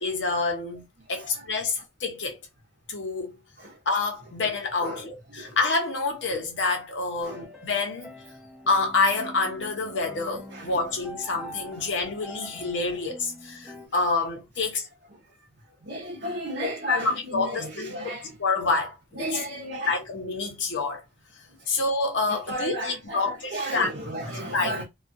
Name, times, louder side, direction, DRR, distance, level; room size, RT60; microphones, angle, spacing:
voice 1, 0.0-0.8 1.1-2.4 2.9-3.4 3.9-8.1 8.7-14.9 16.6-18.1 18.4-19.0 19.9-21.0 21.7-23.9 24.5-24.8, left 3 dB, 80° left, 0.8 m, -27 dB
voice 2, 4.8-5.6 7.2-7.5 10.5-10.7 15.8-18.4 19.1-20.0 22.3-24.8, right 1 dB, 60° right, 0.8 m, -34 dB
sound 1, 7.3-13.9, left 1 dB, ahead, 0.8 m, -45 dB
2.4 x 2.3 x 2.5 m
head